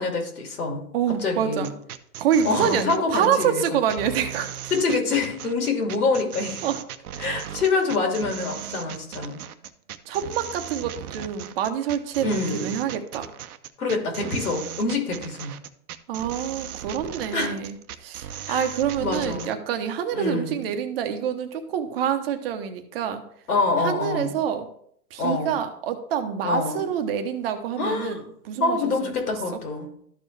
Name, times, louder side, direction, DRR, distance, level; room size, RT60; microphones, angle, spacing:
voice 1, 0.0-0.8 1.2-1.7 2.4-3.8 4.7-6.6 7.2-9.4 12.2-12.8 13.8-15.5 17.3-17.6 18.5-18.7 19.0-19.5 20.1-20.6 23.5-24.4 25.2-25.6 26.4-26.8 27.8-28.2 28.6-29.9, left 3 dB, 80° left, 2 dB, 2.8 m, -26 dB
voice 2, 0.9-1.7 2.2-4.5 6.6-6.8 7.5-7.6 10.1-13.3 16.1-23.2 23.8-24.7 25.1-29.1, right 8 dB, 40° right, 7 dB, 0.9 m, -27 dB
sound 1, 1.6-19.6, right 10 dB, 75° right, 0.8 m, -37 dB
13.0 x 4.5 x 3.2 m, 0.67 s
hypercardioid pair, 140°, 45 cm